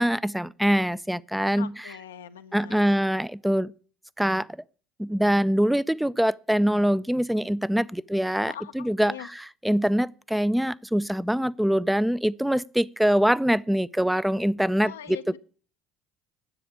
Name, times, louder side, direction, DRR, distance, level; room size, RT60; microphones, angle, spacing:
voice 1, 0.0-1.7 2.5-3.7 4.2-4.5 5.0-9.1 9.6-14.9, equal, 5° right, 0.5 m, -24 dB
voice 2, 1.6-3.0 8.4-9.3 14.8-15.4, left 10 dB, 85° left, 0.8 m, -42 dB
10.0 x 7.7 x 8.6 m
hypercardioid pair, 70°, 0 cm